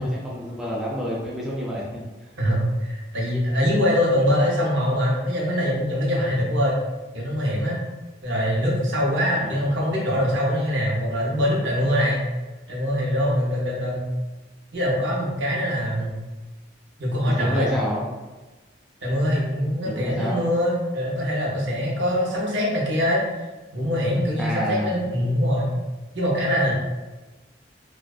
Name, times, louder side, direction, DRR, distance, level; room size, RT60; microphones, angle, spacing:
voice 1, 0.0-2.0 9.4-9.6 17.4-18.1 19.8-20.4 24.4-25.3, equal, 5° right, -6 dB, 0.3 m, -28 dB
voice 2, 2.4-6.8 7.1-7.8 8.2-12.2 12.7-14.1 14.7-16.2 17.0-17.7 19.0-23.2 23.7-25.7 26.1-26.7, equal, 75° right, -3 dB, 0.7 m, -23 dB
2.4 x 2.2 x 2.3 m, 1.2 s
head